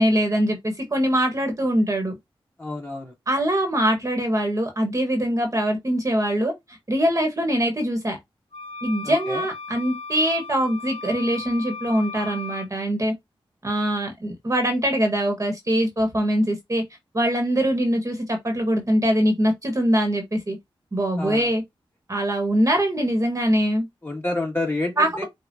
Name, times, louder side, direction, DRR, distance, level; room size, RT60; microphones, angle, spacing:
voice 1, 0.0-2.1 3.3-8.2 8.8-13.1 13.6-16.8 17.1-20.6 20.9-21.6 22.1-23.9 25.0-25.2, equal, 35° right, 1.3 m, -23 dB
voice 2, 2.6-3.1 9.0-9.4 21.2-21.5 24.0-25.2, left 2 dB, 20° left, 1.9 m, -29 dB
sound 1, 8.5-12.7, left 4 dB, 65° left, 0.7 m, -36 dB
5.1 x 2.4 x 2.6 m
cardioid pair, 65°, 10 cm